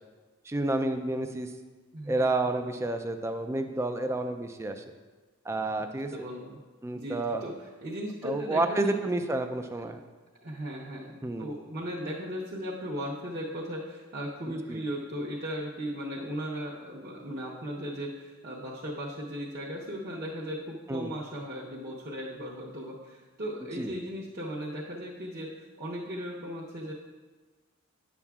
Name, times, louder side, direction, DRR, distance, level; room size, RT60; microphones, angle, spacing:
voice 1, 0.5-1.5 2.1-4.8 5.5-6.1 6.8-7.5 8.2-10.0 11.2-11.5 14.7-14.8 20.9-21.1 23.8-23.9, right 2 dB, 10° right, 7 dB, 0.3 m, -30 dB
voice 2, 1.9-2.3 6.1-6.6 6.9-9.0 10.4-26.9, equal, 45° right, -6 dB, 0.8 m, -37 dB
10.0 x 7.0 x 2.4 m, 1.4 s
head